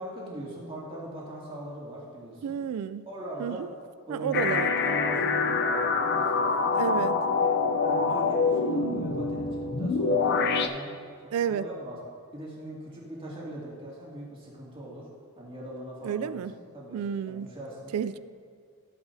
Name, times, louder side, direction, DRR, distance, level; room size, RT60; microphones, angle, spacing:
voice 1, 0.0-2.5 3.1-3.7 4.1-7.5 7.8-10.9 11.2-12.0 12.3-15.1 15.4-17.0 17.3-17.9, right 1 dB, 25° right, -6 dB, 2.5 m, -40 dB
voice 2, 2.4-3.1 3.4-3.7 4.1-4.7 6.8-7.1 11.3-11.6 16.0-16.5 16.9-17.5 17.9-18.2, right 8 dB, 75° right, 15 dB, 0.3 m, -30 dB
sound 1, 4.3-10.7, left 4 dB, 50° left, 0.6 m, -25 dB
15.0 x 8.0 x 2.7 m, 2.1 s
head